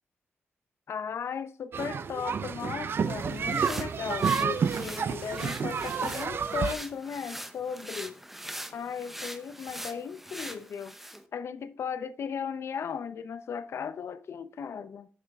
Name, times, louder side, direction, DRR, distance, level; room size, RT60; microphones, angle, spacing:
voice 1, 0.9-8.2 8.7-15.1, left 7 dB, 70° left, 0.6 m, -36 dB
sound 1, 1.7-6.7, right 6 dB, 55° right, 0.5 m, -30 dB
sound 2, 3.0-11.2, right 1 dB, 5° right, 0.7 m, -42 dB
9.2 x 7.3 x 3.5 m
wide cardioid pair, 150°, 5 cm